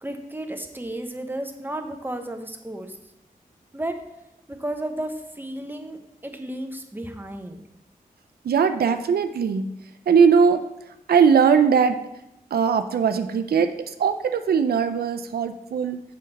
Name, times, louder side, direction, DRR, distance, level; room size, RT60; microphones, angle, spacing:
voice 1, 0.0-3.0 3.7-4.0 4.5-7.6, right 1 dB, 15° right, 5 dB, 0.8 m, -33 dB
voice 2, 8.4-9.7 10.1-10.6 11.1-12.0 12.5-16.0, right 6 dB, 85° right, 9 dB, 0.4 m, -20 dB
6.5 x 5.3 x 4.0 m, 0.87 s
wide cardioid pair, 75°, 16 cm